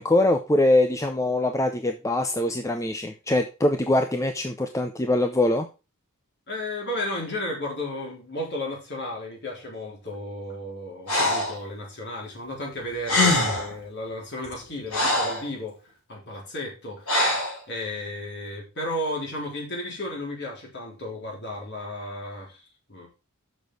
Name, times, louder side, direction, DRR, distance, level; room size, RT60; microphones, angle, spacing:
voice 1, 0.0-5.7, left 1 dB, 15° left, 6 dB, 0.5 m, -23 dB
voice 2, 6.5-15.8 16.1-17.4 17.7-22.6 22.9-23.1, left 1 dB, 50° left, -1 dB, 3.9 m, -34 dB
Breathing, 11.1-11.6 12.8-12.9 13.0-13.7 14.4-15.5 17.1-17.6, left 1 dB, 85° left, 5.5 m, -23 dB
7.1 x 6.2 x 4.9 m, 0.30 s
head